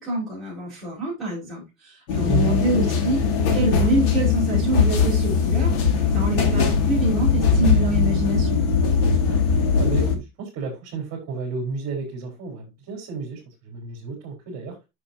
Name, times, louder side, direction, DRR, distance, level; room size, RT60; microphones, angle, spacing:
voice 1, 0.0-3.2 3.5-8.6, right 2 dB, ahead, 5.7 m, -26 dB
sound 1, 2.1-10.1, left 5 dB, 65° left, 2.7 m, -20 dB
voice 2, 2.3-2.6 9.2-14.8, right 5 dB, 35° right, 4.6 m, -32 dB
9.8 x 6.7 x 2.9 m
cardioid pair, 175°, 40 cm